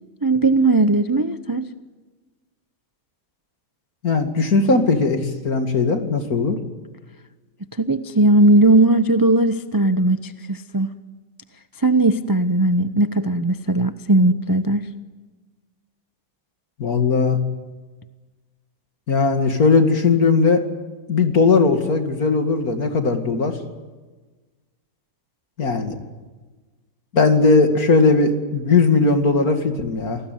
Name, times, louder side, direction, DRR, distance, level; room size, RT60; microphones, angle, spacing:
voice 1, 0.2-1.7 7.8-10.9 11.8-14.9, right 2 dB, 25° right, 11 dB, 0.4 m, -18 dB
voice 2, 4.0-6.6 16.8-17.4 19.1-20.7 21.1-23.5 25.6-26.0 27.1-30.2, left 4 dB, 60° left, 6 dB, 2.8 m, -18 dB
28.0 x 19.5 x 9.3 m, 1.3 s
omnidirectional pair, 1.8 m